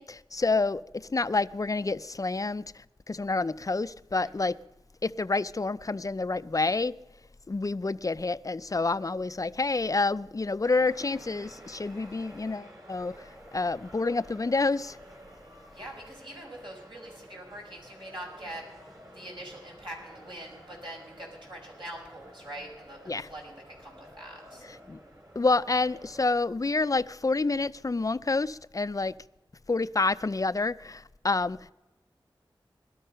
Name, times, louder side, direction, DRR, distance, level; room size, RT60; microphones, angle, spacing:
voice 1, 0.0-4.6 5.0-6.9 7.5-13.2 13.5-15.0 23.1-23.3 24.9-25.0 25.4-29.2 29.7-31.7, left 3 dB, 40° left, 0.5 m, -28 dB
voice 2, 4.2-4.6 15.7-18.7 19.1-24.6, right 1 dB, 65° right, 6.0 m, -44 dB
sound 1, 10.6-26.2, equal, 45° right, 4.1 m, -51 dB
19.0 x 12.5 x 5.6 m
cardioid pair, 45°, 9 cm